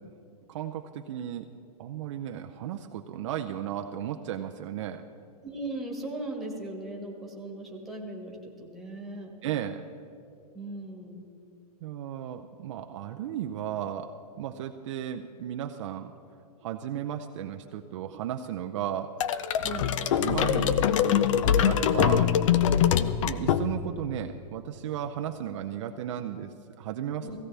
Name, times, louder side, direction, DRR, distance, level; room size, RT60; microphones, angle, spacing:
voice 1, 0.5-1.5 1.8-5.0 9.4-9.8 11.8-16.1 16.6-19.1 19.6-22.4 23.2-27.3, right 10 dB, 50° right, 5 dB, 0.5 m, -35 dB
voice 2, 5.4-9.3 10.5-11.2 19.6-19.9 27.2-27.4, right 1 dB, ahead, -2 dB, 1.6 m, -38 dB
sound 1, 19.2-24.0, left 9 dB, 50° left, 0.5 m, -24 dB
16.5 x 16.0 x 3.3 m, 2.6 s
hypercardioid pair, 150°, 20 cm